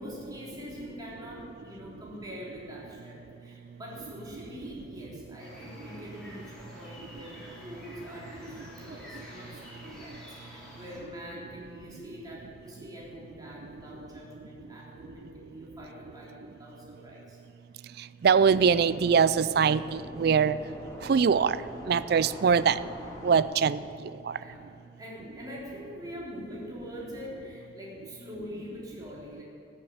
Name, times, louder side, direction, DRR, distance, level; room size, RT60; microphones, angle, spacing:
voice 1, 0.0-17.4 24.3-24.6 25.0-29.4, equal, 20° right, -5 dB, 3.5 m, -44 dB
sound 1, 5.4-11.0, equal, 5° left, 3.8 m, -47 dB
voice 2, 18.2-20.6 21.1-21.6 21.9-22.8 23.2-23.8 24.3-24.4, right 6 dB, 60° right, 16 dB, 0.4 m, -22 dB
sound 2, 18.3-23.4, left 1 dB, 20° left, 2.3 m, -44 dB
14.0 x 8.1 x 8.7 m, 2.7 s
head